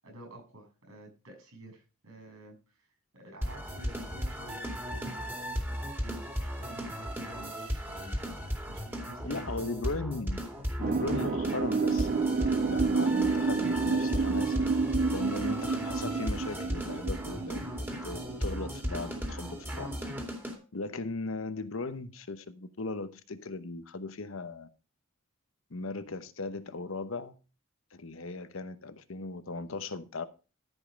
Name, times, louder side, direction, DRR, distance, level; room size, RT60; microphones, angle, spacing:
voice 1, 0.0-2.9 3.1-8.2 8.7-9.6, right 2 dB, 90° right, 7.4 m, -51 dB
sound 1, 3.4-20.6, equal, 10° right, 2.4 m, -36 dB
voice 2, 9.2-10.4 10.8-12.3 12.6-14.5 15.1-17.8 18.0-19.9 20.7-24.7 25.7-27.3 27.9-30.2, left 3 dB, 75° left, 1.0 m, -38 dB
sound 2, 10.8-20.2, right 4 dB, 40° right, 0.4 m, -30 dB
14.0 x 5.5 x 5.1 m
head